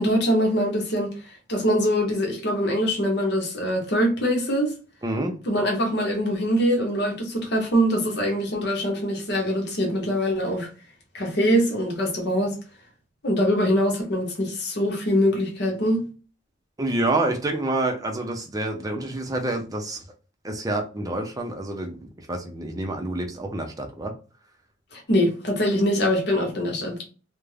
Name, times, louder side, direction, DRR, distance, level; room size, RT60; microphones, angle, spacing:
voice 1, 0.0-4.7 5.4-10.7 11.1-12.5 13.2-16.1 24.9-27.0, equal, 60° left, 0.9 m, -23 dB
voice 2, 5.0-5.4 16.8-20.0 20.4-24.1, right 2 dB, 20° right, 0.5 m, -28 dB
2.4 x 2.1 x 3.2 m
head